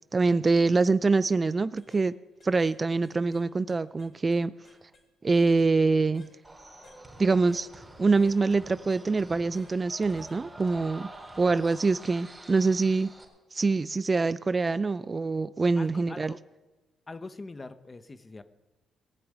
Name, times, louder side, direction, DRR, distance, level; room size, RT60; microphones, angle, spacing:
voice 1, 0.1-2.1 2.4-4.5 5.2-6.3 7.2-11.1 11.4-13.1 13.5-16.3, right 3 dB, 30° right, 15 dB, 0.4 m, -25 dB
sound 1, 1.1-1.3 1.8-2.1 2.4-2.8 3.0-5.1 5.3-5.7 6.1-6.3 6.8-7.0 7.5-7.7 8.1-8.4 8.9-9.0 9.5-9.7 10.2-10.4 10.8-11.0, left 3 dB, 45° left, 3.5 m, -55 dB
sound 2, 6.4-13.2, right 1 dB, 10° right, 4.4 m, -47 dB
voice 2, 15.8-16.4 17.1-18.4, left 3 dB, 25° left, 11 dB, 1.0 m, -43 dB
19.5 x 6.9 x 9.0 m, 1.2 s
cardioid pair, 90°, 0 cm